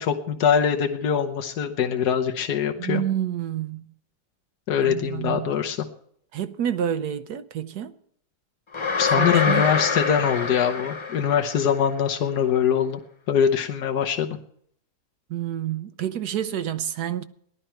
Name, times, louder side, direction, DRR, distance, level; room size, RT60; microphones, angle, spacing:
voice 1, 0.0-3.0 4.7-5.8 9.0-13.0 13.3-14.4, left 8 dB, 90° left, 1.6 m, -23 dB
voice 2, 2.8-3.9 4.8-5.5 6.3-8.0 9.1-9.7 15.3-17.2, right 10 dB, 85° right, 1.3 m, -28 dB
sound 1, 8.7-11.8, left 5 dB, 50° left, 0.3 m, -25 dB
18.0 x 12.0 x 4.5 m
omnidirectional pair, 1.7 m